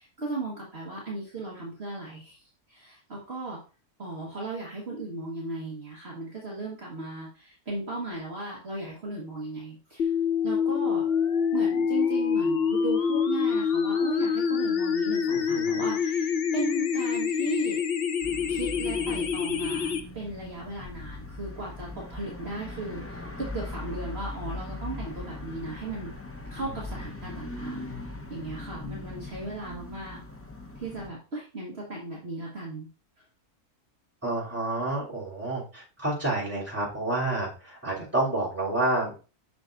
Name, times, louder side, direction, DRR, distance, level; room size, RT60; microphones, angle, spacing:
voice 1, 0.0-3.6 4.0-10.1 10.4-11.1 11.5-17.8 18.5-26.1 26.5-27.8 28.3-30.2 30.7-32.9, right 2 dB, 45° right, -3 dB, 1.6 m, -36 dB
sound 1, 10.0-20.0, left 6 dB, 50° left, 0.8 m, -26 dB
voice 2, 15.3-15.8 34.2-39.2, right 2 dB, 10° right, -5 dB, 3.1 m, -29 dB
sound 2, 18.2-31.1, left 2 dB, 15° left, 0.5 m, -40 dB
7.8 x 6.4 x 2.5 m, 0.35 s
omnidirectional pair, 1.6 m